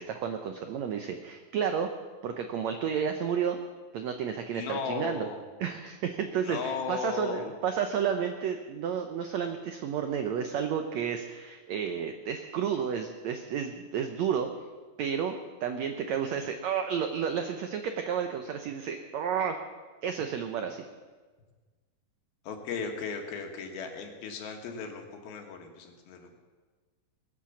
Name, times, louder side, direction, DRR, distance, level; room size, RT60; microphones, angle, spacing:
voice 1, 0.0-1.9 2.2-3.6 3.9-5.3 5.6-14.5 15.0-15.3 15.6-19.6 20.0-20.8, right 7 dB, 85° right, 6 dB, 1.5 m, -31 dB
voice 2, 4.5-5.4 6.4-7.5 22.4-26.4, left 5 dB, 80° left, 4 dB, 3.3 m, -36 dB
20.5 x 7.5 x 7.1 m, 1.4 s
omnidirectional pair, 4.2 m